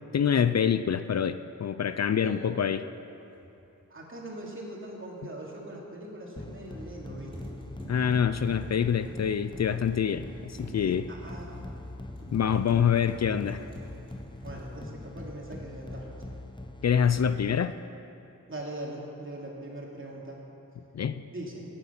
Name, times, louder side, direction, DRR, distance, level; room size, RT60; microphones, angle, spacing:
voice 1, 0.1-2.8 7.9-11.1 12.3-13.7 16.8-17.7 20.9-21.2, left 8 dB, 55° left, 12 dB, 0.5 m, -26 dB
voice 2, 2.2-2.9 3.9-7.5 11.1-11.7 14.4-16.3 18.5-20.4 21.3-21.7, right 1 dB, 40° right, -3 dB, 2.9 m, -41 dB
sound 1, 3.3-3.5 6.7-7.0 7.3-15.5 15.8-16.3, equal, 15° right, 4.1 m, -47 dB
sound 2, 6.4-17.9, left 2 dB, 15° left, 0.8 m, -43 dB
16.5 x 9.8 x 5.9 m, 2.9 s
wide cardioid pair, 85°, 32 cm